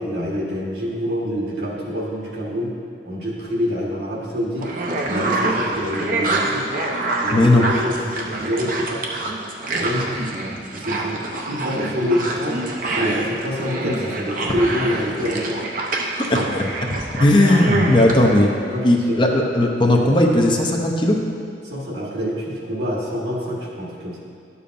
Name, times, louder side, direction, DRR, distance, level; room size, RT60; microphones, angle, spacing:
voice 1, 0.0-2.7 3.0-4.7 5.1-6.6 7.2-9.0 9.7-10.3 10.7-12.6 12.9-15.6 15.9-16.0 18.7-19.3 21.6-24.2, equal, 65° right, -4 dB, 1.5 m, -26 dB
sound 1, 4.6-18.4, right 2 dB, 50° right, 0.7 m, -26 dB
voice 2, 7.3-7.7 16.3-16.6 17.2-18.5 18.8-21.2, left 1 dB, 25° left, 0 dB, 0.6 m, -16 dB
11.0 x 6.8 x 2.6 m, 2.3 s
head